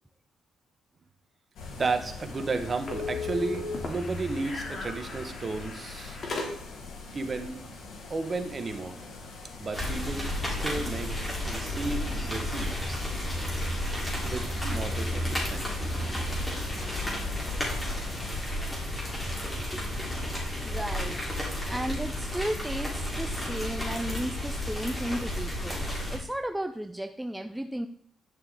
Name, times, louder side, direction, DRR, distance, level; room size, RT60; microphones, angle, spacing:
sound 1, 1.5-18.4, left 3 dB, 70° left, 3.1 m, -43 dB
voice 1, 1.8-6.2 7.1-7.5 8.1-9.0 9.6-11.1 11.4-13.0 14.2-15.8, right 3 dB, 35° right, 7 dB, 1.3 m, -33 dB
sound 2, 2.2-6.9, left 3 dB, 45° left, 2.6 m, -37 dB
sound 3, 9.7-26.2, left 1 dB, 15° left, 3.5 m, -32 dB
voice 2, 20.1-27.9, right 1 dB, 5° right, 8 dB, 0.4 m, -35 dB
10.5 x 6.6 x 3.7 m, 0.65 s
cardioid pair, 90°, 0 cm